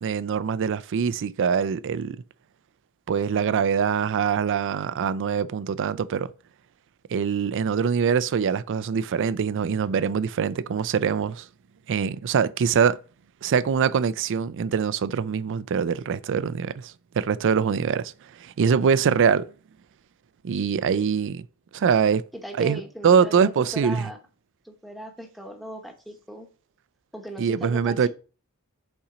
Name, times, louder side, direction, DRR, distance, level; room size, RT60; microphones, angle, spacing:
voice 1, 0.0-2.2 3.1-6.3 7.1-11.5 11.9-13.0 13.4-18.1 18.4-19.5 20.4-21.4 21.7-22.2 22.6-24.1 27.4-28.1, right 6 dB, 55° right, 0.4 m, -23 dB
voice 2, 22.3-24.2 24.6-26.5 27.1-28.1, right 1 dB, ahead, 1.0 m, -38 dB
5.6 x 4.2 x 5.0 m
head